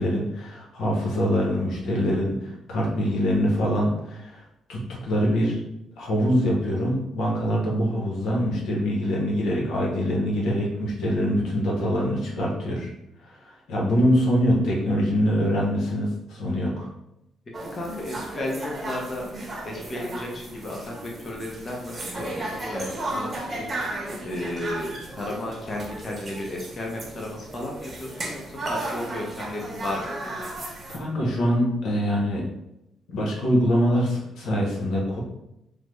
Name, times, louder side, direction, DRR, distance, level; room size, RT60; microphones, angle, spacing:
voice 1, 0.0-4.4 4.7-5.6 6.0-12.9 13.3-16.9 30.9-32.4 33.1-35.2, equal, 80° left, -3 dB, 0.8 m, -24 dB
sound 1, 17.5-31.0, right 1 dB, 30° right, 0.8 m, -34 dB
voice 2, 17.6-19.3 19.6-23.9 24.2-30.1, left 1 dB, 40° left, -1 dB, 0.6 m, -34 dB
3.2 x 2.0 x 3.0 m, 0.86 s
cardioid pair, 90°, 0 cm